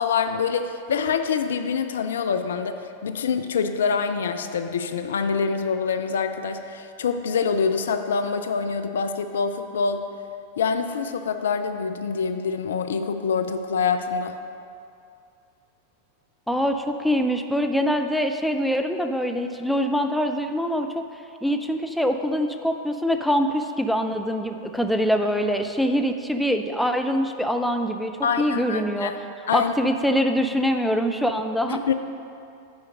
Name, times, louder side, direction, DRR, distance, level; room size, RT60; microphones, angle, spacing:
voice 1, 0.0-10.1 10.6-14.4 28.2-29.2 29.5-29.7 31.7-31.9, left 5 dB, 65° left, 8 dB, 0.4 m, -25 dB
voice 2, 16.5-21.0 21.4-28.1 28.4-29.1 29.5-31.9, equal, ahead, 5 dB, 0.4 m, -24 dB
8.2 x 5.1 x 5.2 m, 2.6 s
figure-of-eight pair, 90°, 0 cm